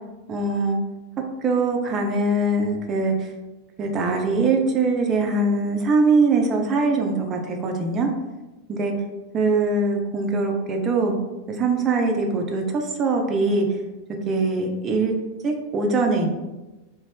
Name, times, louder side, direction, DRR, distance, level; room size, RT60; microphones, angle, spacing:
voice 1, 0.3-0.8 1.4-3.1 3.8-8.1 8.7-8.9 9.3-11.1 11.6-13.7 14.3-15.1 15.4-16.3, right 3 dB, 30° right, 3 dB, 0.4 m, -22 dB
2.5 x 2.1 x 3.2 m, 1.1 s
figure-of-eight pair, 90°, 0 cm